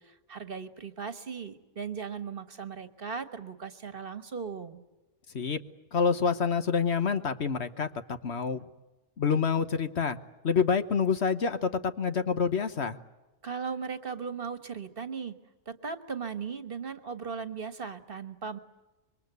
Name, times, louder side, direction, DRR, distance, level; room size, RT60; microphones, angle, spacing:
voice 1, 0.0-4.8 13.4-15.4 15.7-18.6, right 6 dB, 45° right, 10 dB, 1.5 m, -37 dB
voice 2, 5.9-8.7 9.2-10.2 10.4-13.0, left 6 dB, 60° left, 10 dB, 1.4 m, -27 dB
26.5 x 23.0 x 8.2 m, 1.1 s
omnidirectional pair, 1.3 m